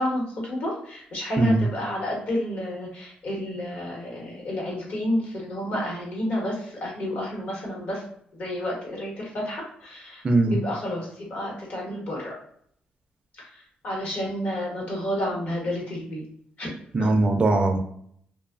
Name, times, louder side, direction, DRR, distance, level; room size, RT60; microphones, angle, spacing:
voice 1, 0.0-8.0 8.3-12.3 13.4-16.2 16.6-16.7 17.0-17.1, left 1 dB, 55° left, -3 dB, 1.2 m, -30 dB
voice 2, 10.2-10.6 16.9-17.8, right 2 dB, 30° right, 4 dB, 0.4 m, -20 dB
2.5 x 2.3 x 2.4 m, 0.64 s
cardioid pair, 120°, 3 cm